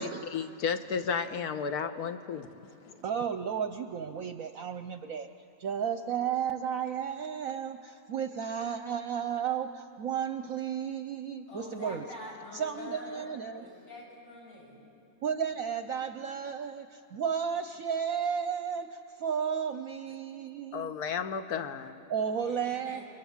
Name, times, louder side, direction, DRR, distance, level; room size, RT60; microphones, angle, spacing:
voice 1, 0.0-2.5 20.7-21.9, left 6 dB, 60° left, 9 dB, 1.5 m, -33 dB
voice 2, 3.0-5.3 5.6-12.0 12.5-13.7 15.2-20.9 22.1-23.0, right 7 dB, 60° right, 8 dB, 1.0 m, -33 dB
voice 3, 11.5-14.8 22.4-23.0, left 1 dB, 80° left, -4 dB, 7.8 m, -45 dB
29.5 x 23.0 x 7.2 m, 2.7 s
omnidirectional pair, 1.9 m